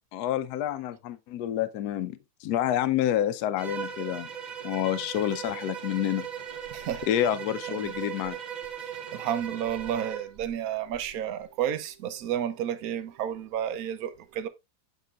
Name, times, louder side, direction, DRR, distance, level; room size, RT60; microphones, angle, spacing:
voice 1, 0.1-4.3 4.6-6.2 7.1-8.4, left 11 dB, 75° left, 1.1 m, -28 dB
Bowed string instrument, 3.6-10.3, right 8 dB, 45° right, 0.6 m, -38 dB
voice 2, 6.7-7.0 7.7-7.9 9.1-14.5, right 10 dB, 70° right, 1.1 m, -31 dB
8.1 x 6.1 x 2.4 m
omnidirectional pair, 1.7 m